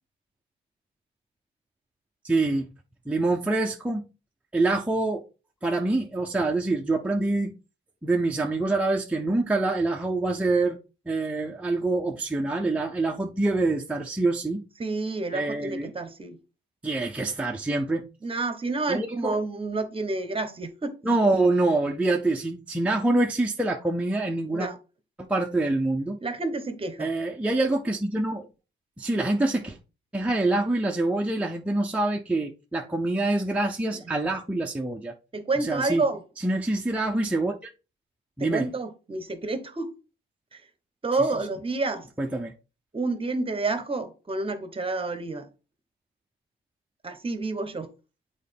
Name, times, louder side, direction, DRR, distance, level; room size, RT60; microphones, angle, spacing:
voice 1, 2.2-2.7 3.1-4.0 4.5-5.2 5.6-7.5 8.0-10.8 11.1-14.6 15.3-15.9 16.8-18.0 18.9-19.4 21.0-24.7 25.2-26.2 27.0-28.5 29.0-29.8 30.1-35.1 35.6-36.0 36.4-37.7 38.4-38.7 42.2-42.5, right 2 dB, 5° right, 0.6 m, -25 dB
voice 2, 14.8-16.4 18.2-21.0 24.5-24.8 26.2-27.1 33.9-34.2 35.3-36.2 38.4-39.9 40.5-40.6 41.0-42.1 42.9-45.5 47.0-47.9, right 3 dB, 30° right, 1.0 m, -29 dB
8.0 x 4.3 x 3.5 m
cardioid pair, 90°, 20 cm